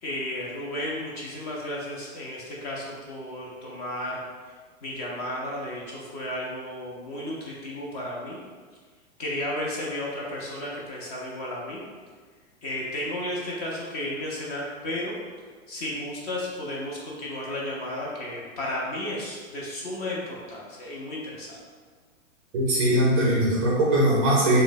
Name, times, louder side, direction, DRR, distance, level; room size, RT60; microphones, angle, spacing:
voice 1, 0.0-4.2 4.8-8.4 9.2-11.8 12.6-15.1 15.7-21.6, left 1 dB, 30° left, -4 dB, 0.4 m, -33 dB
voice 2, 22.5-24.6, right 1 dB, 25° right, -5 dB, 0.4 m, -21 dB
2.6 x 2.0 x 3.8 m, 1.5 s
hypercardioid pair, 135°, 42 cm